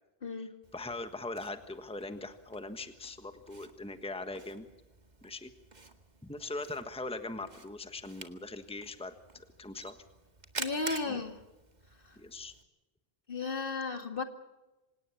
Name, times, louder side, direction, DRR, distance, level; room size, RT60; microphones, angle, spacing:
voice 1, 0.2-0.5 10.6-11.4 12.0-12.2 13.3-14.2, left 4 dB, 60° left, 6 dB, 2.3 m, -34 dB
Camera, 0.6-12.6, right 3 dB, 45° right, 2.0 m, -48 dB
voice 2, 0.7-4.7 5.2-5.5 6.2-10.0 11.1-11.2 12.2-12.5, left 2 dB, 5° left, 9 dB, 1.3 m, -41 dB
26.5 x 18.0 x 7.2 m, 1.1 s
omnidirectional pair, 1.0 m